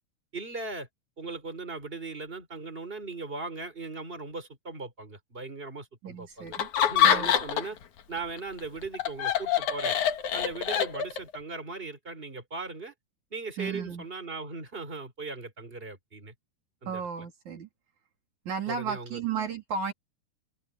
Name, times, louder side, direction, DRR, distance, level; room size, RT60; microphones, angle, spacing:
voice 1, 0.3-0.9 1.2-6.6 6.9-7.8 8.1-10.0 10.3-12.9 13.3-16.3 16.8-17.0 18.7-19.2, right 3 dB, 15° right, 4.7 m, -38 dB
voice 2, 6.0-6.7 7.0-7.3 13.6-14.0 16.9-17.7 18.5-19.9, right 6 dB, 70° right, 4.5 m, -34 dB
Laughter, 6.5-7.8 8.2-11.4, left 9 dB, 75° left, 3.0 m, -25 dB
open air
omnidirectional pair, 3.5 m